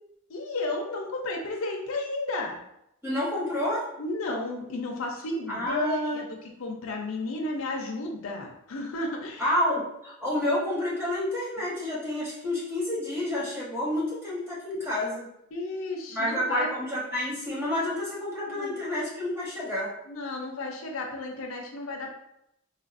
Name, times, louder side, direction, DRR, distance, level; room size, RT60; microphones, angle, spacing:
voice 1, 0.3-2.6 4.0-9.5 15.5-16.8 18.5-18.8 20.1-22.1, left 2 dB, 70° left, 2 dB, 0.5 m, -33 dB
voice 2, 3.0-3.9 5.5-6.2 9.4-15.3 16.1-19.9, left 1 dB, 10° right, -7 dB, 1.1 m, -29 dB
3.7 x 2.5 x 2.4 m, 0.79 s
head